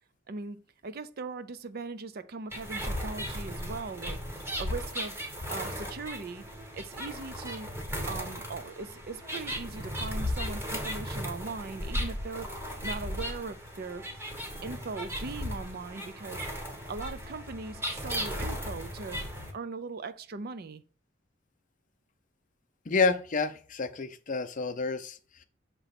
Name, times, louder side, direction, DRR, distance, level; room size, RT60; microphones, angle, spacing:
voice 1, 0.3-0.6 0.8-4.2 4.6-5.2 5.5-6.4 6.8-7.7 8.1-12.5 12.8-14.0 14.6-16.5 16.9-19.2 19.5-20.8, right 4 dB, 50° right, 0.5 m, -39 dB
sound 1, 2.5-19.5, equal, 15° right, 1.2 m, -36 dB
voice 2, 22.9-25.4, left 4 dB, 40° left, 0.6 m, -29 dB
6.6 x 3.0 x 5.8 m
head